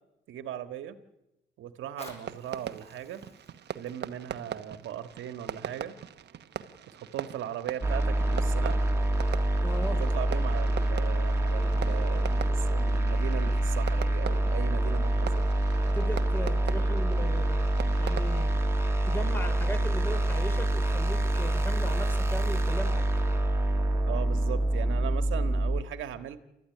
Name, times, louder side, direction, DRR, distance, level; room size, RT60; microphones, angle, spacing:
voice 1, 0.3-1.0 1.6-3.2 3.7-6.0 6.9-8.8 10.0-15.5 16.7-16.8 24.1-26.4, right 10 dB, 80° right, 9 dB, 1.6 m, -38 dB
Fire, 1.7-6.7 7.3-7.4, left 1 dB, 30° left, 6.1 m, -53 dB
Fireworks, 2.0-18.6, right 9 dB, 60° right, 1.1 m, -42 dB
sound 1, 7.8-25.8, right 1 dB, 15° right, 2.4 m, -26 dB
voice 2, 9.6-10.0 15.9-17.6 18.0-18.5 19.0-23.1, equal, 10° left, 7 dB, 4.1 m, -37 dB
29.0 x 13.5 x 10.0 m, 0.95 s
cardioid pair, 90°, 20 cm